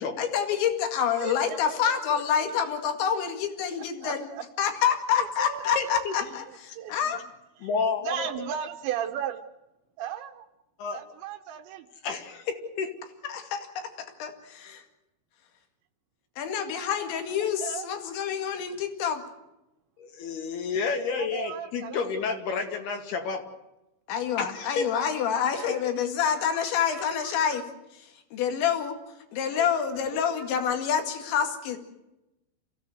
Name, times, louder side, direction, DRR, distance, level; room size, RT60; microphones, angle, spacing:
voice 1, 0.2-4.3 4.6-7.2 13.3-14.8 16.4-19.2 24.1-27.7 28.3-29.0 29.3-31.8, left 8 dB, 85° left, 5 dB, 4.5 m, -27 dB
voice 2, 1.2-2.7 3.8-4.4 5.1-6.0 6.8-7.2 7.6-7.7 8.0-9.4 10.0-10.5 10.9-11.9 16.5-17.1 17.4-17.9 21.1-22.4 25.5-25.8 26.2-27.6 29.4-30.5, right 9 dB, 80° right, 5 dB, 3.2 m, -37 dB
voice 3, 5.8-6.1 7.6-8.3 10.8-11.0 12.0-12.9 20.0-23.5 24.4-24.9 25.7-25.8, left 5 dB, 65° left, 4 dB, 4.0 m, -30 dB
28.0 x 16.0 x 7.9 m, 0.94 s
omnidirectional pair, 5.1 m